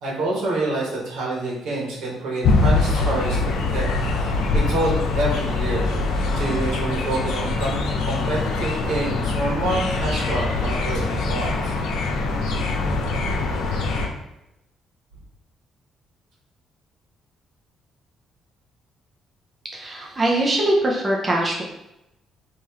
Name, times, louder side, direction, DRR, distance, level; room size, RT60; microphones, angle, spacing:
voice 1, 0.0-3.4 3.7-3.9 4.1-5.9 6.2-11.7, right 2 dB, 85° right, -4 dB, 1.5 m, -27 dB
sound 1, 2.4-14.1, left 3 dB, 80° left, 0.8 m, -23 dB
voice 2, 19.7-21.6, right 1 dB, 20° right, -2 dB, 0.6 m, -22 dB
3.4 x 3.0 x 4.7 m, 0.88 s
cardioid pair, 160°, 0 cm